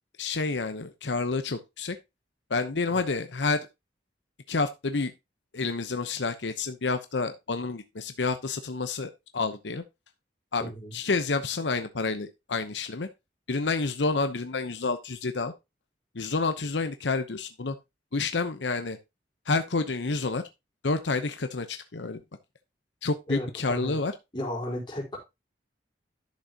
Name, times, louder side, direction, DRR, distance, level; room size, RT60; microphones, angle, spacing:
voice 1, 0.2-2.0 2.5-3.7 4.5-5.1 5.5-9.8 10.5-13.1 13.5-15.5 16.1-17.8 18.1-19.0 19.5-20.4 20.8-22.2 23.0-24.1, left 3 dB, 85° left, 0.9 m, -29 dB
voice 2, 10.6-10.9 23.3-24.0 24.3-25.2, left 1 dB, 25° left, 4.1 m, -34 dB
11.5 x 6.5 x 2.9 m
head